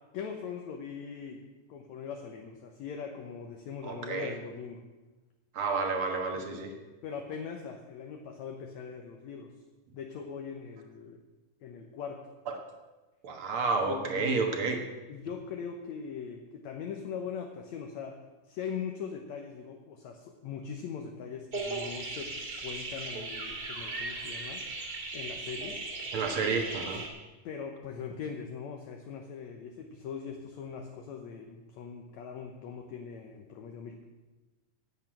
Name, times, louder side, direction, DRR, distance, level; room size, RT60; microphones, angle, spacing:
voice 1, 0.1-1.4 1.7-4.8 6.3-6.7 7.0-9.5 9.9-11.2 11.6-12.3 13.8-14.4 15.1-18.2 18.5-22.3 22.6-25.8 27.4-34.0, left 6 dB, 70° left, 2 dB, 2.1 m, -41 dB
voice 2, 3.8-4.3 5.5-6.7 12.5-12.6 13.2-14.8 26.1-27.0, right 4 dB, 50° right, 4 dB, 1.8 m, -30 dB
sound 1, 21.5-27.1, right 2 dB, 35° right, 2.3 m, -37 dB
11.0 x 8.2 x 9.1 m, 1.2 s
omnidirectional pair, 3.8 m